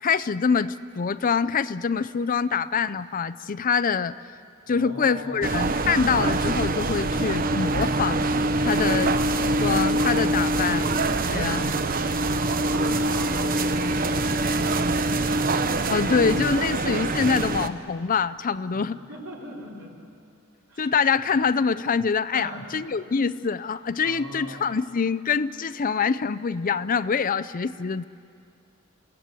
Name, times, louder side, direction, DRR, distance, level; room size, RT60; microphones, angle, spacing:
voice 1, 0.0-4.4 4.7-8.3 8.6-9.2 9.6-10.9 11.3-11.7 15.9-19.0 20.8-28.0, left 5 dB, 40° left, 16 dB, 0.5 m, -25 dB
voice 2, 4.7-5.6 8.6-9.1 11.3-15.4 18.7-20.0 20.7-20.9 21.3-21.5 22.3-22.7 24.0-24.7, right 1 dB, 65° right, -2 dB, 4.5 m, -42 dB
sound 1, 5.4-17.7, right 2 dB, 40° right, 0.9 m, -24 dB
28.5 x 17.0 x 8.2 m, 2.4 s
head